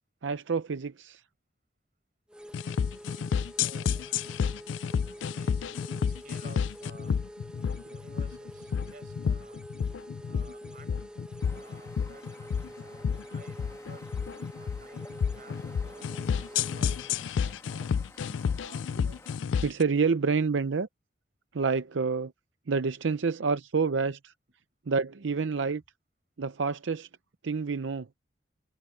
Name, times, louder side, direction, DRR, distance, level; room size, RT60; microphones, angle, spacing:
voice 1, 0.2-1.2 16.2-16.3 16.9-17.0 18.6-19.2 19.6-20.9 21.5-22.3 22.7-24.3 24.9-25.8 26.4-27.1 27.4-28.1, right 5 dB, 85° right, 0.6 m, -28 dB
sound 1, 2.3-17.2, equal, 5° right, 1.2 m, -47 dB
sound 2, 2.5-19.8, left 7 dB, 80° left, 0.4 m, -30 dB
voice 2, 3.6-7.1 7.6-9.6 10.2-11.1 11.5-14.1 14.5-18.3, right 2 dB, 45° right, 6.6 m, -55 dB
sound 3, 11.4-19.4, left 2 dB, 15° left, 2.3 m, -53 dB
head